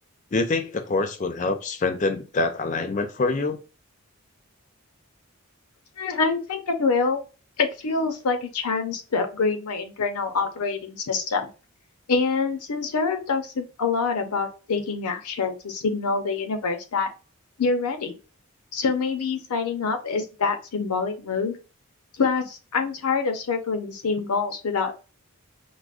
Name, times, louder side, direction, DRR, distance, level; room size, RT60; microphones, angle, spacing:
voice 1, 0.3-3.6, left 3 dB, 35° left, 0.4 m, -25 dB
voice 2, 6.0-7.2 7.6-11.5 12.1-17.1 17.6-18.2 18.7-21.6 22.2-24.9, left 4 dB, 85° left, 0.6 m, -26 dB
4.8 x 2.0 x 2.4 m
head